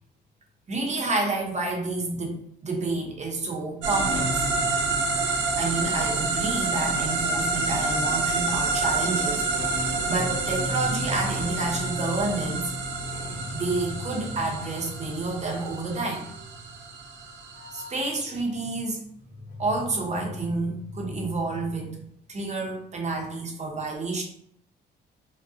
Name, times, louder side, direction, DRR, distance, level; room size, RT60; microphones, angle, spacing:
voice 1, 0.7-2.4 2.6-4.3 5.6-9.5 10.1-12.7 13.5-16.3 17.7-19.0 19.6-22.0 22.3-24.2, right 3 dB, 35° right, 0 dB, 0.9 m, -29 dB
sound 1, 3.0-18.8 19.0-19.9, left 1 dB, 55° left, 1.1 m, -39 dB
sound 2, 3.8-18.0, right 3 dB, 70° right, 0.6 m, -28 dB
2.6 x 2.2 x 3.6 m, 0.68 s
cardioid pair, 80°, 20 cm